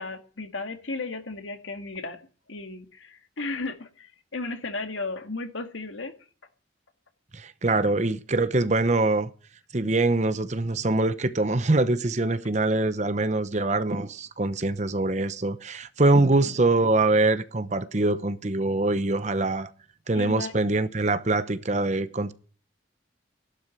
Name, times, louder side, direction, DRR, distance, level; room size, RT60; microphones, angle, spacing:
voice 1, 0.0-2.2 2.5-6.1 20.1-20.5, left 3 dB, 85° left, 1.9 m, -34 dB
voice 2, 7.3-9.3 9.7-19.7 20.1-22.3, right 2 dB, 35° right, 0.8 m, -24 dB
13.0 x 11.5 x 7.8 m
head